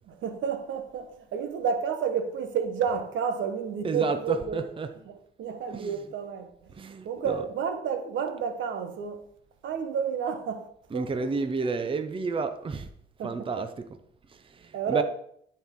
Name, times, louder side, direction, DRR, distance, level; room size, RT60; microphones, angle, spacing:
voice 1, 0.1-4.6 5.0-6.5 7.0-9.3 9.6-10.7 10.9-11.5 13.2-13.7 14.7-15.0, right 6 dB, 75° right, 1.1 m, -31 dB
voice 2, 3.8-5.0 5.7-6.0 6.8-7.4 10.9-12.9 13.2-13.9 14.6-15.0, right 4 dB, 25° right, 0.7 m, -31 dB
13.0 x 4.5 x 3.7 m
cardioid pair, 90°, 20 cm